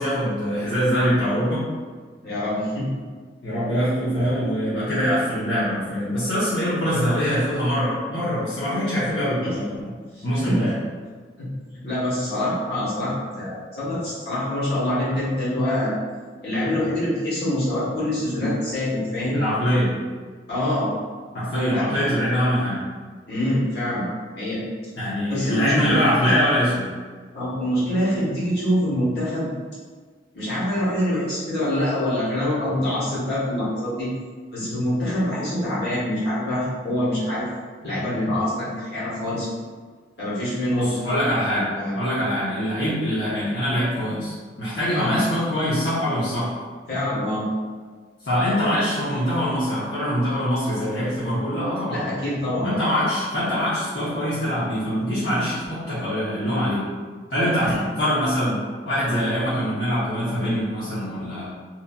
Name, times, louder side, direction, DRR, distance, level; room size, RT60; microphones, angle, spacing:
voice 1, 0.0-1.7 3.4-9.9 10.2-10.8 19.3-20.0 21.3-22.8 25.0-26.9 40.7-41.7 41.9-46.5 48.2-52.0 52.6-56.8 57.3-61.4, equal, 85° left, -11 dB, 0.8 m, -23 dB
voice 2, 2.2-2.9 9.4-9.5 10.1-10.6 11.4-11.5 11.8-16.0 16.4-19.4 20.5-20.9 21.7-21.8 23.3-24.1 24.4-24.6 25.3-25.9 26.2-26.3 27.3-29.5 30.3-34.1 34.5-37.5 37.8-39.5 40.2-41.0 41.5-42.0 44.9-45.2 46.9-47.5 51.9-52.7 57.6-57.8, left 1 dB, 65° left, -9 dB, 1.2 m, -25 dB
3.1 x 2.5 x 2.3 m, 1.5 s
head